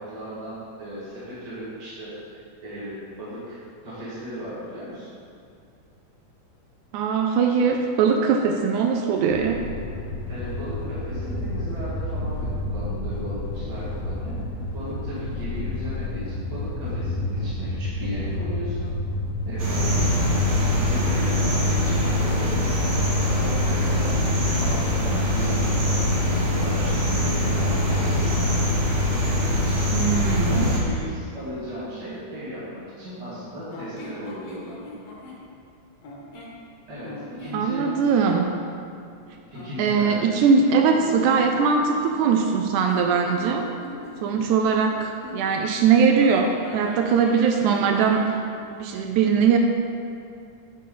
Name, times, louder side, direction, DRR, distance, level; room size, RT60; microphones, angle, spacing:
voice 1, 0.0-5.1 10.3-14.4 14.7-18.9 19.4-20.2 20.6-28.6 30.5-34.8 36.9-37.9 39.5-41.4, equal, 40° right, -11 dB, 2.0 m, -36 dB
voice 2, 6.9-9.6 29.9-30.7 37.5-38.5 39.8-43.6 44.2-48.3 48.8-49.6, right 6 dB, 80° right, 3 dB, 1.9 m, -21 dB
sound 1, 9.3-21.1, left 2 dB, 80° left, 1.3 m, -30 dB
sound 2, 19.6-30.8, left 1 dB, 55° right, 1.1 m, -23 dB
sound 3, 33.7-35.4 36.0-36.6 37.0-38.3 39.5-40.7 41.0-45.6 46.2-48.3, left 2 dB, 60° left, 1.7 m, -40 dB
10.0 x 5.5 x 3.8 m, 2.5 s
omnidirectional pair, 3.7 m